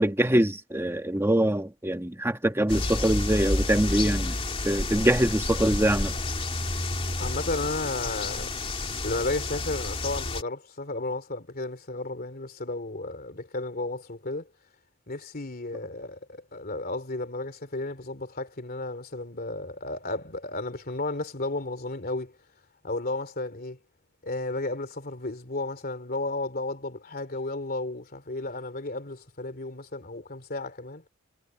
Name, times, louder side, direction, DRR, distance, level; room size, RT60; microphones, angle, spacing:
voice 1, 0.0-4.3 4.6-6.1, right 1 dB, 10° right, 1.5 m, -24 dB
sound 1, 2.7-10.4, left 2 dB, 25° left, 2.8 m, -30 dB
voice 2, 7.2-8.5 9.0-14.5 15.1-22.4 22.8-23.8 24.2-31.0, left 2 dB, 45° left, 3.1 m, -33 dB
head